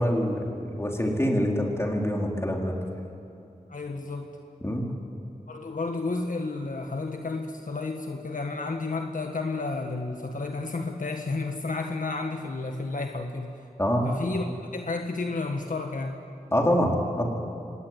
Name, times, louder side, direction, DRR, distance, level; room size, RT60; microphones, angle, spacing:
voice 1, 0.0-2.8 4.6-4.9 13.8-14.1 16.5-17.3, equal, 15° left, 0 dB, 4.1 m, -25 dB
voice 2, 3.7-4.3 5.5-13.6 14.0-14.5 14.7-16.2, left 3 dB, 60° left, 4 dB, 1.6 m, -31 dB
25.5 x 18.5 x 9.7 m, 2.6 s
wide cardioid pair, 65°, 15 cm